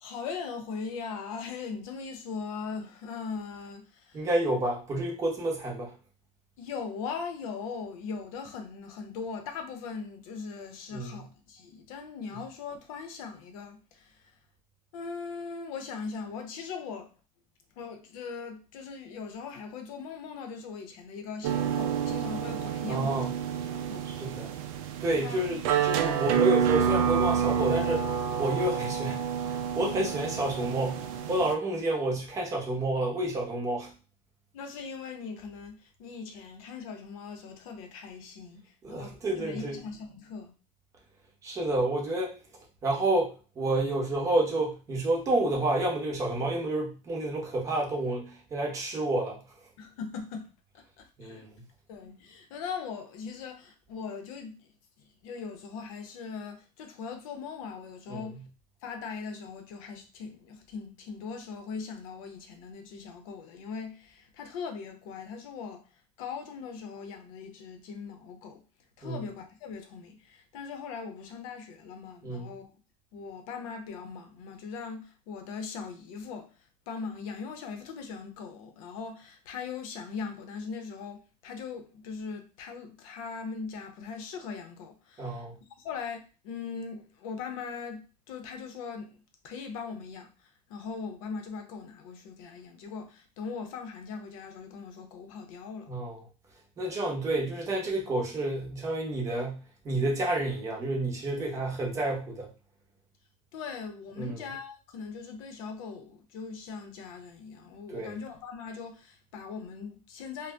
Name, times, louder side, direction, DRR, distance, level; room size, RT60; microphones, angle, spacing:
voice 1, 0.0-4.3 6.6-14.3 14.9-17.1 17.8-23.2 23.6-24.1 25.2-25.5 34.5-40.5 49.8-51.4 51.9-54.7 55.2-58.4 58.8-65.8 66.2-68.6 69.0-72.7 73.1-76.5 76.9-85.4 85.8-89.2 89.4-95.9 103.5-110.5, left 5 dB, 85° left, 0.7 m, -40 dB
voice 2, 4.1-5.9 10.9-11.2 22.9-23.3 24.2-24.5 25.0-29.2 29.4-33.9 38.8-39.8 41.4-42.3 42.8-43.3 43.6-49.4 51.2-51.6 58.1-58.4 69.0-69.2 72.2-72.5 85.2-85.5 95.9-96.2 96.8-102.5 104.2-104.4 107.9-108.1, right 2 dB, 20° right, 0.7 m, -29 dB
sound 1, 21.4-31.5, right 8 dB, 80° right, 0.4 m, -29 dB
2.6 x 2.1 x 3.2 m
cardioid pair, 175°, 17 cm